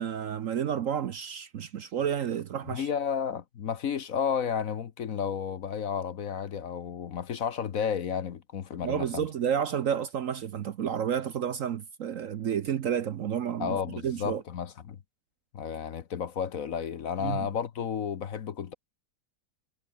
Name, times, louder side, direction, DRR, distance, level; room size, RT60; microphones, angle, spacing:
voice 1, 0.0-2.9 8.8-13.8 14.0-14.4 17.2-17.5, right 8 dB, 55° right, 1.0 m, -30 dB
voice 2, 2.7-9.3 13.6-15.0 15.5-18.7, left 7 dB, 55° left, 1.3 m, -32 dB
omnidirectional pair, 1.9 m